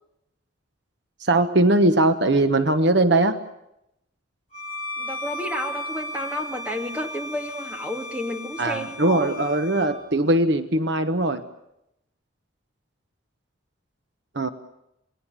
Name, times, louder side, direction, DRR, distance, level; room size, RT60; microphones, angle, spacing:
voice 1, 1.2-3.4 8.6-11.4 14.3-14.5, right 2 dB, 60° right, 9 dB, 1.2 m, -20 dB
Bowed string instrument, 4.5-9.9, left 1 dB, 35° left, 5.1 m, -35 dB
voice 2, 5.0-9.3, left 1 dB, 5° right, 3 dB, 2.4 m, -31 dB
28.0 x 20.0 x 7.4 m, 0.84 s
head